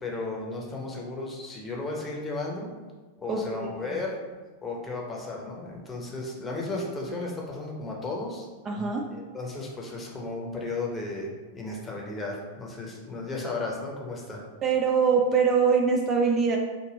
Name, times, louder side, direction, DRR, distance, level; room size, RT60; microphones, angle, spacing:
voice 1, 0.0-2.7 3.2-4.2 4.6-8.5 9.1-14.4, left 2 dB, 15° left, -1 dB, 0.8 m, -34 dB
voice 2, 3.3-4.0 8.7-9.1 14.6-16.6, right 5 dB, 25° right, 1 dB, 0.3 m, -23 dB
3.3 x 2.4 x 3.9 m, 1.3 s
figure-of-eight pair, 90°, 0 cm